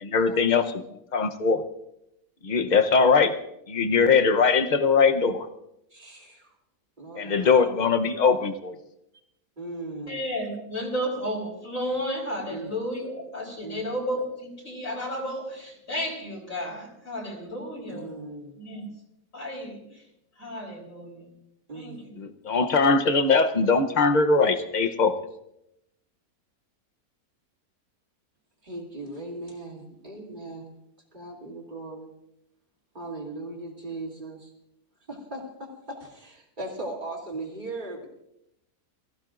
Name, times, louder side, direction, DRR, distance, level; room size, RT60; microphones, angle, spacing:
voice 1, 0.0-0.7 0.9-1.6 2.4-3.3 3.7-5.5 7.2-8.5 22.2-25.1, left 4 dB, 35° left, 7 dB, 0.8 m, -21 dB
voice 2, 5.9-6.5 7.0-7.6 9.6-10.2 12.5-12.7 13.6-13.9 17.9-18.6 21.7-22.0 28.6-30.7 31.1-32.1 32.9-34.5 35.1-38.1, right 2 dB, 30° right, -2 dB, 3.1 m, -38 dB
voice 3, 10.1-18.1 18.6-18.9 19.3-20.0 20.4-21.3 21.7-22.0, equal, 55° left, -5 dB, 4.1 m, -33 dB
23.5 x 15.0 x 2.6 m, 0.81 s
omnidirectional pair, 1.6 m